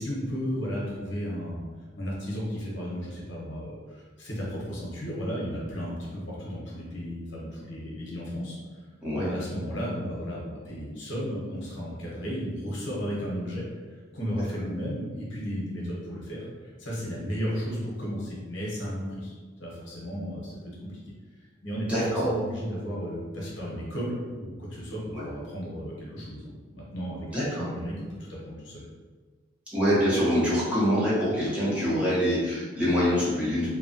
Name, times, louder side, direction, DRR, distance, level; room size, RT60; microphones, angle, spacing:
voice 1, 0.0-1.7 2.0-8.6 9.1-19.3 19.6-21.0 21.4-27.3 27.6-28.8, equal, 75° left, -5 dB, 0.9 m, -34 dB
voice 2, 21.9-22.3 25.1-25.2 27.3-27.6 29.7-33.7, equal, 5° right, -10 dB, 0.8 m, -25 dB
2.9 x 2.2 x 2.7 m, 1.4 s
head